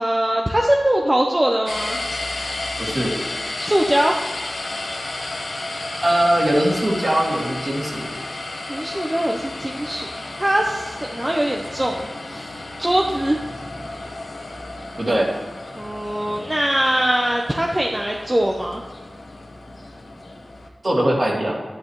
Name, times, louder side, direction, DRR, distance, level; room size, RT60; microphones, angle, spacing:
voice 1, 0.0-2.0 3.6-4.2 8.7-10.1 10.4-13.4 15.8-18.8, right 1 dB, 20° right, 0 dB, 0.8 m, -22 dB
sound 1, 1.7-20.7, left 2 dB, 85° left, 1.3 m, -32 dB
voice 2, 2.8-3.2 6.0-8.1 15.0-15.3 20.8-21.6, right 1 dB, 50° right, -3 dB, 2.5 m, -21 dB
11.5 x 9.9 x 3.2 m, 1.3 s
wide cardioid pair, 55°, 0 cm